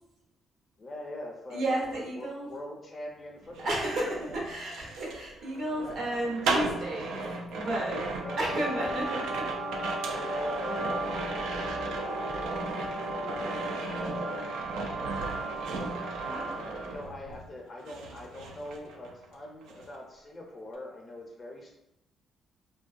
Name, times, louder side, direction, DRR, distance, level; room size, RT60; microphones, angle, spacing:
voice 1, 0.8-3.8 4.3-4.5 5.7-6.0 7.9-8.9 10.0-12.6 12.9-15.5 16.3-21.7, left 1 dB, 35° left, 0 dB, 0.5 m, -43 dB
voice 2, 1.5-2.5 3.6-7.2 7.5-8.0 8.4-9.5 16.2-16.6, right 1 dB, 65° right, -2 dB, 0.8 m, -32 dB
sound 1, 3.4-17.5 17.8-19.3 19.6-19.9, right 3 dB, 90° right, 0.3 m, -36 dB
sound 2, 8.1-16.9, right 1 dB, 20° right, 0.4 m, -36 dB
2.5 x 2.2 x 2.5 m, 0.86 s
cardioid pair, 90°, 0 cm